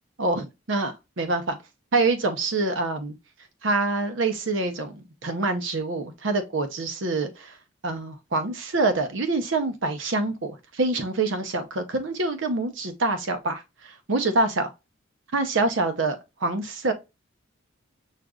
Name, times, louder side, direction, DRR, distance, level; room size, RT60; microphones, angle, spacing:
voice 1, 0.2-1.6 1.9-3.1 3.6-7.5 7.8-14.7 15.3-16.9, right 3 dB, 70° right, 0.7 m, -26 dB
6.3 x 2.5 x 2.3 m
head